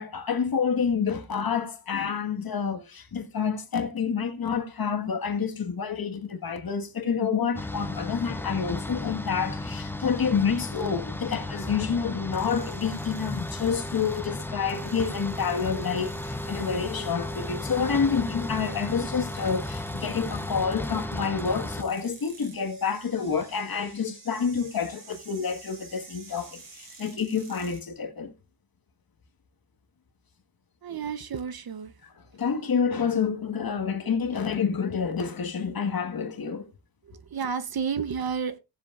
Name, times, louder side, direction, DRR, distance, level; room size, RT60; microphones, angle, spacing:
voice 1, 0.0-28.3 32.3-36.7, left 6 dB, 45° left, 1.6 m, -28 dB
sound 1, 7.5-21.8, left 2 dB, 5° left, 0.7 m, -34 dB
sound 2, 12.3-27.9, right 4 dB, 70° right, 4.5 m, -51 dB
voice 2, 30.8-31.9 37.0-38.6, right 6 dB, 45° right, 0.9 m, -31 dB
17.5 x 7.6 x 2.4 m
wide cardioid pair, 130°, 50 cm